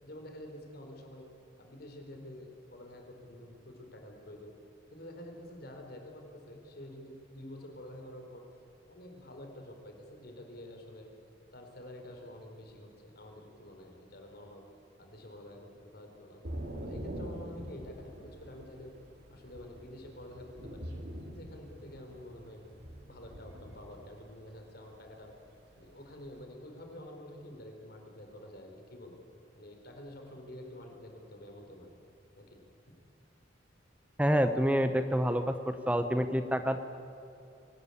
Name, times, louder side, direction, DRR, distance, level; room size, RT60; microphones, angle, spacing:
voice 1, 0.0-1.2 1.6-4.5 4.9-8.4 8.9-11.1 11.5-14.6 15.0-16.4 16.8-18.9 19.3-20.9 21.2-22.6 23.1-25.3 25.8-29.2 29.5-31.9 32.4-32.6, left 1 dB, 55° left, 3 dB, 4.4 m, -48 dB
Thunder / Rain, 16.4-26.4, equal, 60° right, 2.7 m, -45 dB
voice 2, 34.2-36.8, equal, 5° right, 8 dB, 0.7 m, -28 dB
23.5 x 18.5 x 8.7 m, 2.9 s
head